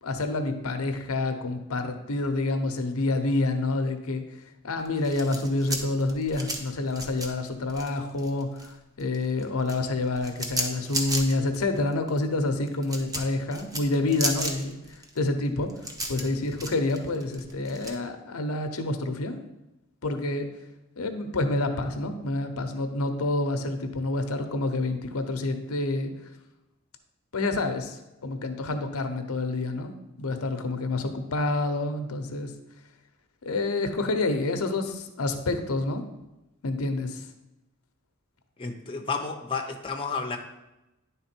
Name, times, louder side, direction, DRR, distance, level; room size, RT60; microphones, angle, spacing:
voice 1, 0.0-4.2 4.6-15.7 16.1-19.4 20.0-20.5 21.0-26.1 27.3-28.0 28.2-29.9 30.2-32.5 33.4-36.0 36.6-37.3, left 2 dB, 90° left, 7 dB, 0.7 m, -28 dB
sound 1, 4.8-8.7 9.0-17.9, right 1 dB, 15° right, 0.7 m, -34 dB
voice 2, 38.6-40.4, left 4 dB, 25° left, 3 dB, 0.6 m, -31 dB
10.0 x 3.5 x 4.4 m, 0.95 s
head